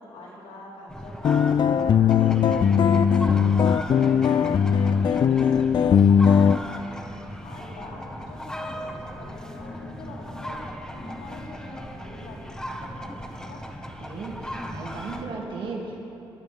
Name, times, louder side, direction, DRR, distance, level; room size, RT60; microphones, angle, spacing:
voice 1, 0.0-13.6, left 2 dB, 80° left, -6 dB, 4.2 m, -45 dB
sound 1, 0.9-15.2, equal, 5° left, 1.5 m, -37 dB
sound 2, 1.2-6.6, left 7 dB, 50° left, 0.4 m, -19 dB
voice 2, 14.0-16.0, right 4 dB, 65° right, -2 dB, 2.6 m, -35 dB
24.5 x 12.0 x 3.6 m, 2.9 s
cardioid pair, 65°, 9 cm